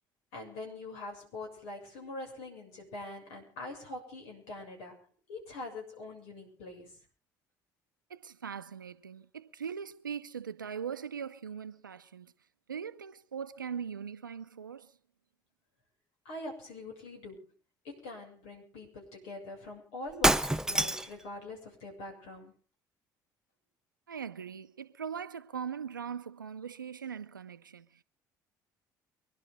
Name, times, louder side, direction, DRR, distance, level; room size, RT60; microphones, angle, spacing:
voice 1, 0.3-7.0 16.3-17.5 17.8-22.6, left 2 dB, 70° left, 7.0 m, -44 dB
voice 2, 8.1-12.3 12.7-14.9 24.1-28.0, right 7 dB, 90° right, 0.7 m, -40 dB
Shatter, 20.1-21.2, right 1 dB, 5° right, 0.8 m, -26 dB
24.5 x 11.5 x 3.8 m
figure-of-eight pair, 55°, 10 cm